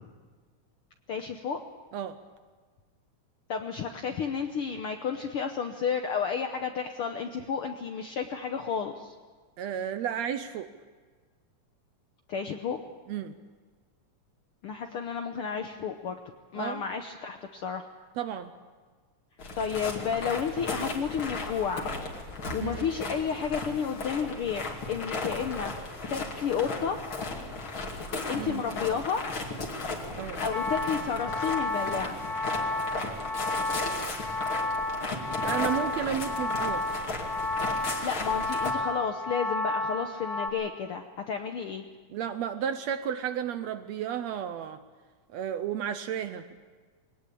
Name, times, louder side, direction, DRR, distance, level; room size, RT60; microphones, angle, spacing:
voice 1, 1.1-1.6 3.5-9.1 12.3-12.8 14.6-16.2 16.5-17.9 19.5-21.9 22.5-27.0 28.3-29.3 30.4-32.2 38.0-41.8, left 6 dB, 70° left, 5 dB, 1.3 m, -31 dB
voice 2, 9.6-10.7 13.1-13.3 16.6-16.8 18.2-18.5 22.6-22.9 28.3-28.6 30.1-30.4 35.4-36.9 42.1-44.8 45.3-46.5, right 9 dB, 70° right, 10 dB, 1.7 m, -32 dB
sound 1, 19.4-38.7, left 3 dB, 40° left, 2.9 m, -36 dB
sound 2, 30.5-40.5, left 2 dB, 30° right, 3.4 m, -31 dB
21.5 x 19.0 x 8.5 m, 1.5 s
omnidirectional pair, 3.7 m